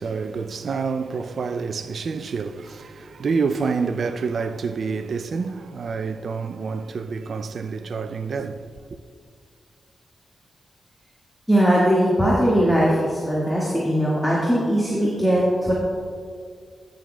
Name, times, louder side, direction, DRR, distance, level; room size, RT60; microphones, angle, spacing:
voice 1, 0.0-8.7, right 5 dB, 65° right, 0.4 m, -28 dB
voice 2, 11.5-15.7, equal, 5° left, 1.9 m, -20 dB
14.5 x 6.4 x 2.3 m
supercardioid pair, 40°, 0 cm